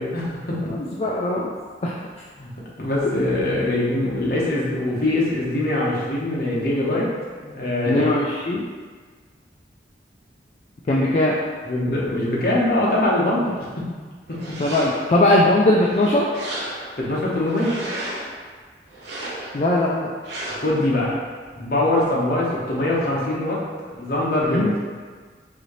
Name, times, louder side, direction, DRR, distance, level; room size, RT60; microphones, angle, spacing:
voice 1, 0.0-0.6 2.4-2.5 2.8-7.1 7.4-8.1 10.9-11.0 11.6-13.5 13.8-13.9 14.3-14.4 17.0-17.8 20.5-21.2 21.5-23.6 23.9-24.7, left 1 dB, 55° left, -5 dB, 0.9 m, -22 dB
voice 2, 0.7-1.5 1.8-1.9 7.9-8.7 10.9-11.4 14.6-16.3 19.5-20.1 24.4-24.7, left 1 dB, 35° left, -4 dB, 0.3 m, -20 dB
sound 1, 14.3-15.2 15.7-17.0 17.4-18.3 18.9-19.7 20.2-20.8, right 1 dB, 85° right, 0.8 m, -33 dB
4.1 x 2.7 x 3.1 m, 1.5 s
head